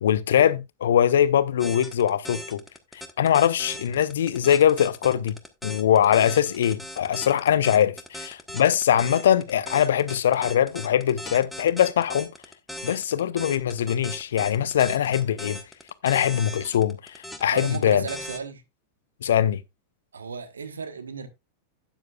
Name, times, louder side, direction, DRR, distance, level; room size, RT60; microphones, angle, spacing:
voice 1, 0.0-2.6 3.2-5.4 5.6-12.3 12.8-15.6 16.0-18.0 19.2-19.6, left 10 dB, 60° left, 0.7 m, -22 dB
sound 1, 1.6-18.4, equal, 5° left, 1.3 m, -38 dB
voice 2, 17.5-18.6 20.1-21.3, right 5 dB, 70° right, 1.3 m, -34 dB
12.5 x 9.0 x 2.4 m
figure-of-eight pair, 90°, 0 cm